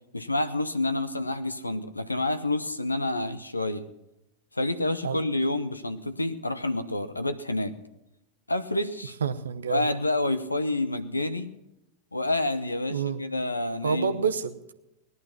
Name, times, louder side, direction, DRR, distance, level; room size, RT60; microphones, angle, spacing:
voice 1, 0.1-3.9 4.5-7.7 8.5-9.2 9.7-11.5 12.1-14.3, left 2 dB, 85° left, 14 dB, 0.7 m, -28 dB
voice 2, 9.2-9.9 12.9-13.2 13.8-14.7, right 6 dB, 70° right, 12 dB, 0.9 m, -28 dB
18.0 x 11.0 x 6.0 m, 0.92 s
figure-of-eight pair, 90°, 0 cm